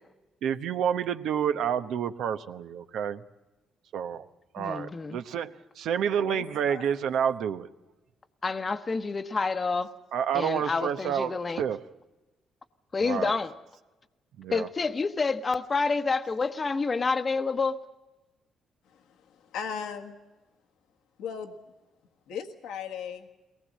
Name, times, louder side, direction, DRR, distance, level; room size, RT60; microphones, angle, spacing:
voice 1, 0.4-3.2 3.9-4.3 4.5-7.7 10.1-11.9 13.0-13.3 14.4-14.7, right 8 dB, 80° right, 0.9 m, -29 dB
voice 2, 4.6-5.2 8.4-9.9 10.3-11.6 12.9-13.5 14.5-17.8, left 4 dB, 30° left, 1.0 m, -28 dB
voice 3, 6.3-6.9 18.9-19.0 19.3-20.2 21.2-21.5 22.3-23.3, left 7 dB, 90° left, 1.6 m, -37 dB
22.5 x 19.0 x 7.4 m
cardioid pair, 90°, 0 cm